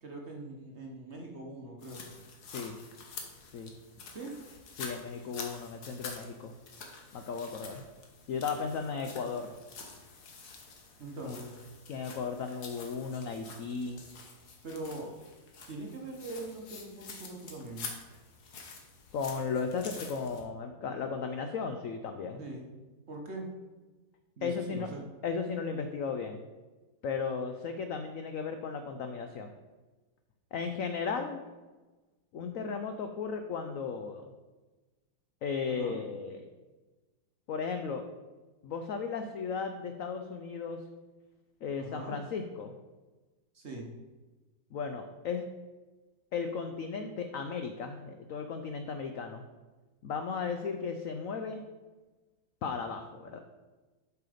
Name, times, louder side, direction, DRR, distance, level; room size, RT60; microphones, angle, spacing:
voice 1, 0.0-2.0 4.1-4.3 11.0-11.5 14.6-15.1 15.7-17.9 22.4-22.7 23.1-23.5 24.4-25.0 35.7-36.0 41.8-42.2 43.5-43.9, right 2 dB, 45° right, 0 dB, 1.1 m, -42 dB
sound 1, 1.8-20.4, left 4 dB, 55° left, 1.6 m, -48 dB
voice 2, 4.8-6.5 7.1-7.8 8.3-9.5 11.2-11.4 11.9-14.0 19.1-22.4 24.4-24.9 25.2-26.4 27.0-29.5 30.5-31.4 32.3-34.3 35.4-36.4 37.5-38.1 38.6-40.8 41.6-42.7 44.7-45.5 46.3-49.4 50.0-51.6 52.6-53.4, left 5 dB, 80° left, 6 dB, 0.7 m, -35 dB
7.6 x 5.8 x 5.0 m, 1.2 s
omnidirectional pair, 2.1 m